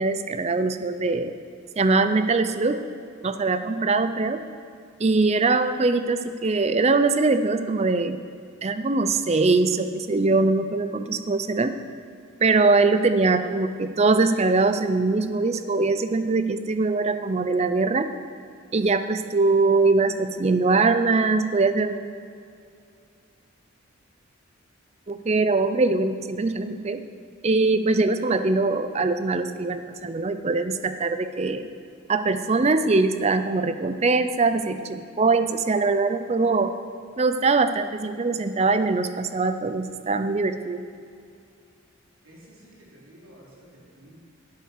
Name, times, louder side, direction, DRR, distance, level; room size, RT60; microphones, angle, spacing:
voice 1, 0.0-1.4 1.8-2.8 3.2-4.4 5.0-8.2 8.6-11.7 12.4-18.1 18.7-22.0 25.1-27.0 27.4-31.7 32.1-36.8 37.2-40.8, right 3 dB, 30° right, 10 dB, 0.5 m, -22 dB
voice 2, 42.2-44.2, right 1 dB, 85° right, -4 dB, 3.0 m, -51 dB
11.0 x 8.1 x 6.6 m, 2.3 s
head